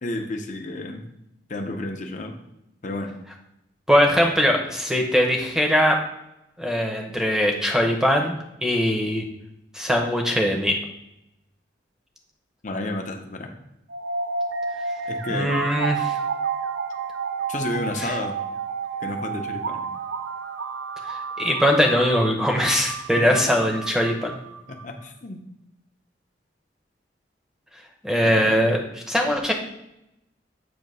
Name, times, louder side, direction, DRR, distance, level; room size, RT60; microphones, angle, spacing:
voice 1, 0.0-1.0 1.5-2.4 2.8-3.2 12.6-13.6 15.1-15.7 17.5-18.4 19.0-19.9 23.1-23.5 24.7-25.4 28.2-28.7, left 2 dB, 40° left, 4 dB, 0.7 m, -31 dB
voice 2, 3.9-6.0 6.6-8.4 8.6-9.2 9.7-10.8 15.3-16.2 18.0-18.1 21.1-24.4 28.0-29.5, equal, 5° right, 2 dB, 0.7 m, -21 dB
sound 1, 13.9-24.9, right 5 dB, 85° right, 0.5 m, -30 dB
7.8 x 2.8 x 5.4 m, 0.85 s
head